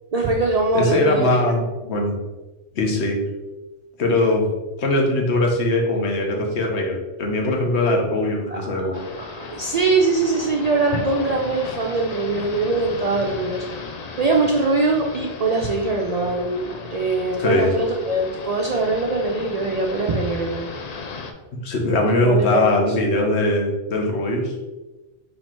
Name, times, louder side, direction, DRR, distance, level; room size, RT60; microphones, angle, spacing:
voice 1, 0.1-1.3 8.5-8.6 9.2-13.6 14.0-20.7 22.0-22.8, right 3 dB, 60° right, -1 dB, 0.4 m, -22 dB
voice 2, 0.7-2.1 2.7-3.2 4.0-4.5 4.8-8.9 17.4-17.7 21.6-24.5, left 2 dB, 70° left, 0 dB, 1.2 m, -21 dB
sound 1, 8.9-21.3, left 4 dB, 55° left, 0.5 m, -35 dB
4.3 x 2.8 x 4.4 m, 1.1 s
omnidirectional pair, 1.2 m